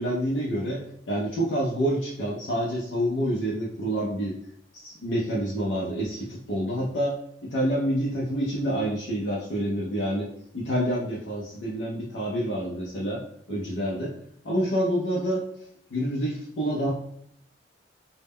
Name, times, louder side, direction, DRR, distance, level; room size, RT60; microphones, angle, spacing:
voice 1, 0.0-4.3 4.7-10.3 10.5-13.2 13.5-14.1 14.4-15.4 15.9-16.9, equal, 80° left, -5 dB, 0.5 m, -27 dB
2.1 x 2.1 x 3.4 m, 0.69 s
head